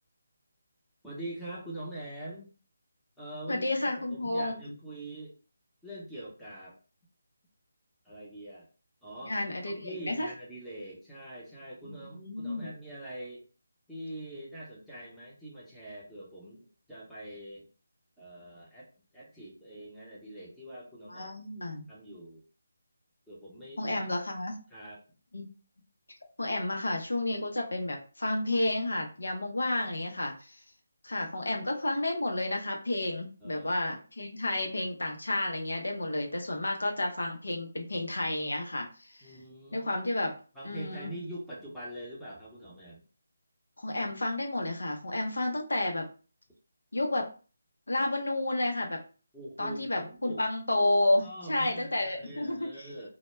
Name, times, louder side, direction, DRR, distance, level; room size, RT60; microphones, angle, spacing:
voice 1, 1.0-2.5 3.2-5.3 5.8-6.7 8.0-8.7 9.0-9.4 9.8-13.4 13.9-17.7 18.2-18.9 19.1-21.4 21.9-22.4 23.3-24.1 24.7-25.0 29.9-30.2 33.4-33.7 39.2-39.9 40.5-43.0 49.3-50.4 51.2-53.1, right 1 dB, ahead, -9 dB, 0.7 m, -44 dB
voice 2, 3.5-4.6 9.2-10.3 11.8-12.7 21.1-21.9 23.8-24.6 25.3-25.5 26.4-30.6 31.0-39.4 39.7-40.4 40.6-41.1 43.8-46.1 46.9-47.3 47.9-49.0 49.6-52.9, left 1 dB, 80° left, 2 dB, 0.6 m, -31 dB
2.1 x 2.1 x 3.1 m, 0.36 s
figure-of-eight pair, 160°, 0 cm